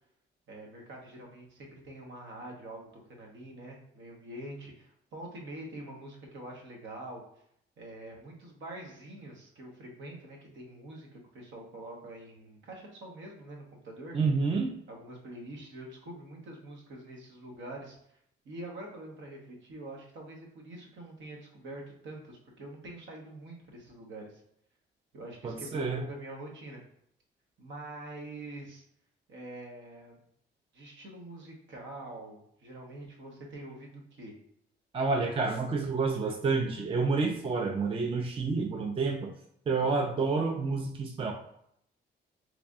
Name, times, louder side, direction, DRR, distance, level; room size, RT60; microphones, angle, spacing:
voice 1, 0.5-7.2 7.8-14.2 14.9-18.2 18.4-24.4 25.1-26.8 27.6-28.8 29.3-30.2 30.7-34.3, right 1 dB, 70° right, 0 dB, 1.1 m, -45 dB
voice 2, 14.1-14.7 25.4-26.0 34.9-39.3 39.7-41.3, right 4 dB, 30° right, 3 dB, 0.5 m, -29 dB
3.3 x 2.5 x 3.6 m, 0.70 s
cardioid pair, 90°, 20 cm